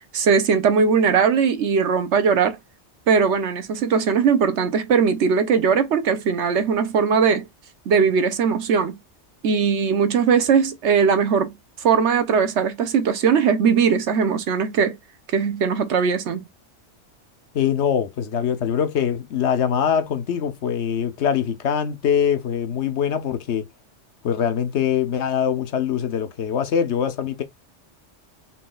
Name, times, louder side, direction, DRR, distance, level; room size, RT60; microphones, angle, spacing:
voice 1, 0.1-2.6 3.1-7.5 7.9-8.9 9.4-15.0 15.3-16.4, right 6 dB, 70° right, 1.1 m, -19 dB
voice 2, 17.5-23.7 24.2-27.4, left 8 dB, 70° left, 1.0 m, -23 dB
5.7 x 3.9 x 2.3 m
omnidirectional pair, 1.2 m